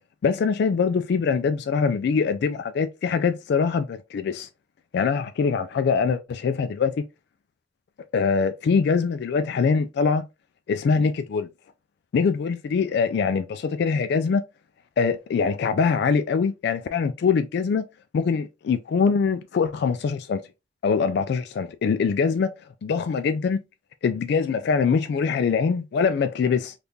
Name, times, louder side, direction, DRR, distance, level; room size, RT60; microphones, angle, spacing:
voice 1, 0.2-4.5 4.9-7.0 8.1-10.3 10.7-11.5 12.1-14.4 15.0-17.8 18.1-20.4 20.8-22.5 22.8-23.6 24.0-26.7, left 5 dB, 60° left, 0.3 m, -23 dB
3.5 x 2.4 x 2.7 m
head